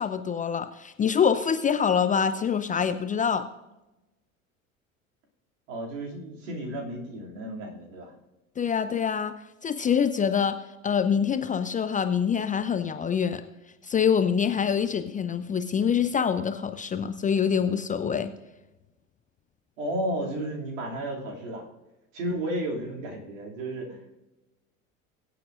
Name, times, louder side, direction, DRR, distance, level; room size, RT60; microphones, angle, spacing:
voice 1, 0.0-3.4 8.6-9.3 9.6-10.6 10.8-13.4 13.8-18.3, left 7 dB, 20° left, 10 dB, 0.5 m, -25 dB
voice 2, 5.7-8.1 19.8-21.7 22.1-24.1, right 1 dB, 65° right, -1 dB, 2.7 m, -33 dB
22.0 x 8.6 x 2.5 m, 1.0 s
figure-of-eight pair, 70°, 41 cm